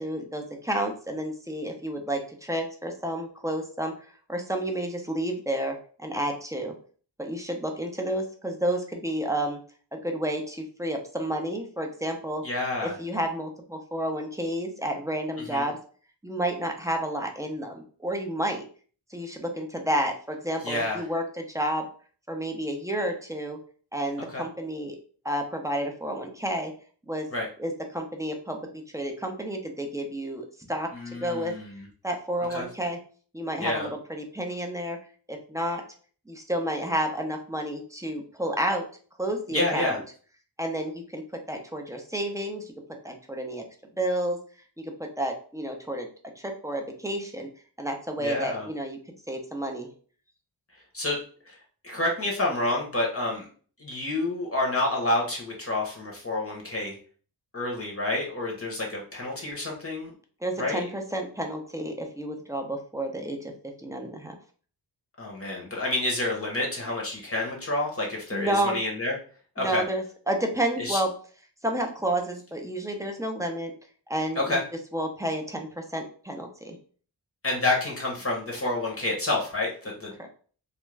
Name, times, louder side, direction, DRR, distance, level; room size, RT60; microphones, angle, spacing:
voice 1, 0.0-3.9 4.3-6.7 7.2-9.6 9.9-12.4 12.8-15.8 16.2-18.6 19.1-21.9 22.3-23.6 23.9-25.0 25.2-26.7 27.1-27.3 27.6-28.6 28.9-30.9 31.2-31.5 32.0-33.0 33.3-35.0 35.3-35.8 36.3-38.9 39.2-40.0 40.6-41.2 41.5-42.7 43.0-43.6 44.0-44.4 44.8-46.1 46.4-47.5 47.8-49.0 49.3-49.9 60.4-63.5 63.8-64.3 68.3-68.8 69.6-71.1 71.6-73.7 74.1-74.6 74.9-76.8 80.2-80.3, right 1 dB, 10° right, 2 dB, 0.5 m, -30 dB
voice 2, 12.4-13.0 15.4-15.6 20.6-21.0 24.3-24.4 27.3-27.5 30.9-31.9 32.5-32.6 33.6-33.9 39.5-40.0 48.2-48.7 50.9-51.2 51.5-51.6 51.8-53.5 53.8-57.0 57.5-60.1 60.6-60.9 65.2-69.1 69.6-69.8 70.8-71.0 74.4-74.6 77.4-80.3, left 2 dB, 35° left, -2 dB, 0.8 m, -29 dB
2.4 x 2.2 x 3.1 m, 0.42 s
wide cardioid pair, 70°, 42 cm